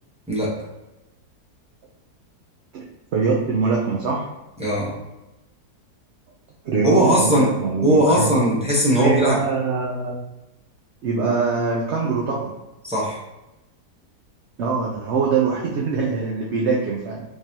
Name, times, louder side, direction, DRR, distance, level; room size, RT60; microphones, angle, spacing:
voice 1, 3.1-4.2 6.6-8.3 9.0-10.2 11.0-12.5 14.6-17.2, right 4 dB, 65° right, -3 dB, 0.7 m, -23 dB
voice 2, 4.6-4.9 6.8-7.5 7.8-9.4 12.8-13.2, equal, 5° right, -6 dB, 0.5 m, -19 dB
3.7 x 3.1 x 2.7 m, 0.96 s
omnidirectional pair, 1.7 m